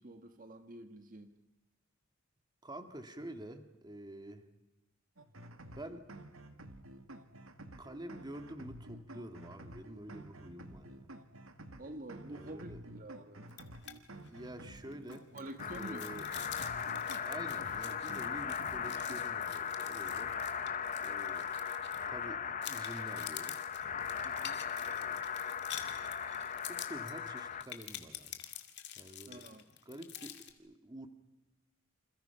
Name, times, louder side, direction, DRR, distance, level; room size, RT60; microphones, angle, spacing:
voice 1, 0.0-1.3 11.8-13.6 15.3-16.1 24.2-24.6 29.3-29.6, right 1 dB, 40° right, 7 dB, 1.5 m, -48 dB
voice 2, 2.6-4.5 5.7-6.1 7.8-11.1 12.3-12.8 14.2-15.3 15.7-16.3 17.2-20.4 21.0-21.5 22.1-23.6 24.8-25.2 26.6-28.4 29.0-29.4 29.9-31.1, right 1 dB, 20° right, 7 dB, 1.9 m, -48 dB
sound 1, 5.2-19.3, right 1 dB, 85° right, 2.3 m, -51 dB
sound 2, 13.5-14.0 14.3-14.4 14.8-22.2 22.6-30.5, left 11 dB, 55° left, 2.5 m, -48 dB
sound 3, 15.6-27.6, left 7 dB, 40° left, 0.9 m, -38 dB
29.0 x 28.0 x 5.8 m, 0.97 s
head